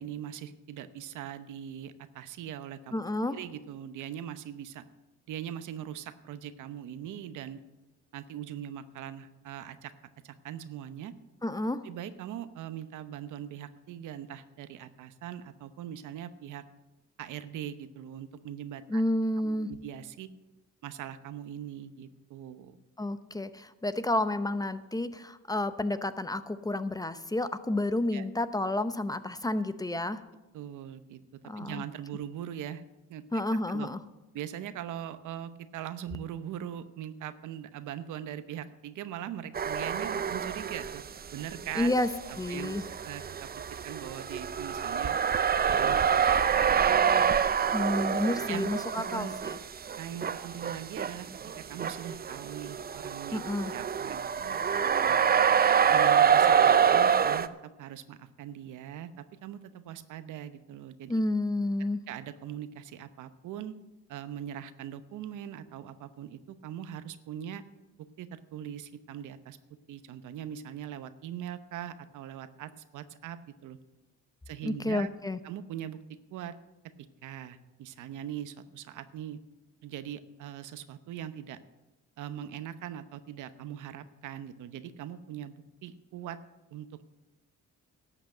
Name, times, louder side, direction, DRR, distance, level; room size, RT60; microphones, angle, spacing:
voice 1, 0.0-2.9 3.3-4.8 5.3-7.6 8.1-9.9 10.2-11.1 11.8-16.6 17.2-19.0 19.4-20.3 20.8-22.8 28.1-28.2 30.5-31.2 31.6-32.8 33.1-33.2 33.7-33.9 34.3-41.0 41.3-42.0 42.3-42.8 43.0-45.2 45.6-47.4 48.5-48.7 48.9-49.3 50.0-51.3 51.6-53.4 53.7-54.6 55.0-55.2 55.9-61.2 62.1-63.7 64.1-67.6 68.2-69.6 69.9-73.8 74.5-75.1 75.4-76.0 76.3-76.5 77.2-79.4 79.8-81.6 82.2-86.4 86.7-86.9, right 10 dB, 80° right, 12 dB, 0.9 m, -41 dB
voice 2, 2.9-3.3 11.4-11.8 18.9-19.7 23.0-30.2 31.4-31.8 33.3-34.0 41.7-42.1 42.4-42.8 47.7-49.6 53.3-53.7 61.1-62.0 74.6-75.4, left 1 dB, 10° left, 12 dB, 0.7 m, -30 dB
sound 1, 39.5-41.1 41.4-57.5, right 7 dB, 30° right, 0.6 m, -26 dB
12.0 x 8.1 x 7.8 m, 1.0 s
cardioid pair, 90°, 30 cm